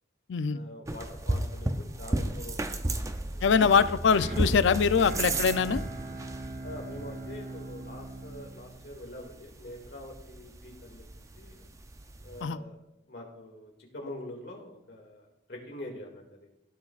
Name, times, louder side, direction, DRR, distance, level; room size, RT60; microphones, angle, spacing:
voice 1, 0.4-3.1 3.3-3.4 6.6-11.0 11.3-11.7 12.2-12.8 13.1-16.5, left 1 dB, 65° left, 0 dB, 2.2 m, -44 dB
sound 1, 0.9-12.4, right 1 dB, 15° right, 0.5 m, -35 dB
voice 2, 3.4-5.8 12.4-12.6, left 6 dB, 85° left, 14 dB, 0.4 m, -23 dB
sound 2, 3.8-9.9, right 2 dB, 50° right, 0.8 m, -42 dB
15.5 x 7.0 x 2.4 m, 0.86 s
head